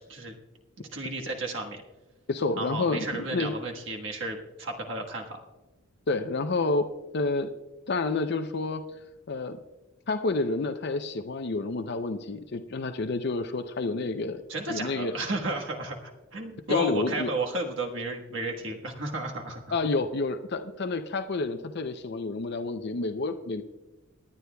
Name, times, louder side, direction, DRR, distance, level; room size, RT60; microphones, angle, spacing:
voice 1, 0.8-1.8 2.6-5.4 14.5-19.8, right 2 dB, 65° right, 1 dB, 1.4 m, -33 dB
voice 2, 2.3-3.5 6.1-6.8 7.1-7.5 7.9-8.8 9.3-9.6 10.1-14.4 14.7-15.1 16.7-17.3 19.7-23.6, left 3 dB, 55° left, 8 dB, 0.5 m, -29 dB
28.0 x 9.8 x 2.3 m, 1.1 s
head